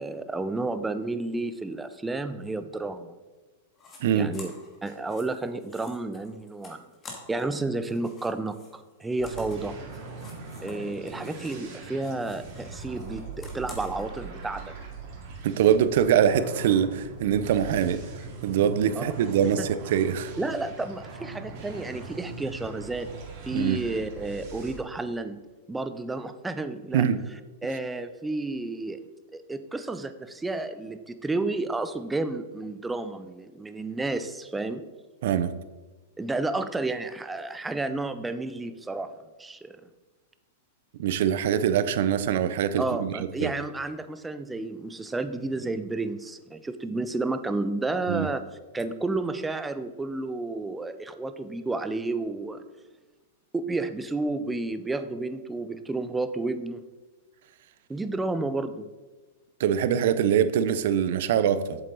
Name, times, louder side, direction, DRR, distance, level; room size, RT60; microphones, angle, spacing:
voice 1, 0.0-3.1 4.2-4.5 4.8-6.9 7.3-9.8 10.6-14.6 19.0-19.1 19.6-19.7 20.4-23.1 23.4-25.4 25.7-27.0 27.6-29.0 29.3-34.8 36.2-39.1 39.4-39.8 42.8-48.5 48.7-52.6 53.5-56.8 57.9-58.9, right 2 dB, 10° right, 0.5 m, -31 dB
sound 1, 3.8-4.0 4.3-7.6 7.8-11.7 12.0-14.1, left 3 dB, 25° left, 2.3 m, -49 dB
voice 2, 4.0-4.3 15.4-18.0 18.4-20.3 23.5-23.8 26.9-27.2 35.2-35.5 41.0-43.1 43.4-43.5 48.1-48.3 59.6-61.8, right 9 dB, 65° right, 0.6 m, -23 dB
sound 2, 9.2-24.8, right 4 dB, 50° right, 2.3 m, -41 dB
7.9 x 7.5 x 4.0 m
hypercardioid pair, 125°, 0 cm